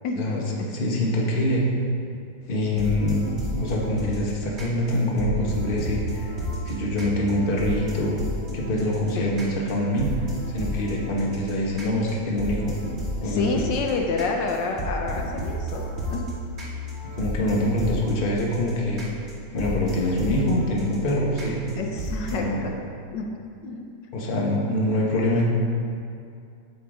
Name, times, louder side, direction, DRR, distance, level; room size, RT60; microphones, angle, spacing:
voice 1, 0.1-1.6 2.5-6.3 6.6-8.2 8.5-10.1 10.5-12.7 13.2-13.6 17.0-19.0 19.5-21.6 22.3-22.6 24.1-25.5, left 1 dB, 35° left, -2 dB, 1.2 m, -25 dB
sound 1, 2.6-22.3, equal, 35° right, 2.3 m, -33 dB
voice 2, 13.2-16.3 21.8-22.7 23.1-23.3 23.6-23.8, left 3 dB, 75° left, 2 dB, 1.3 m, -28 dB
7.8 x 7.5 x 4.9 m, 2.4 s
omnidirectional pair, 2.0 m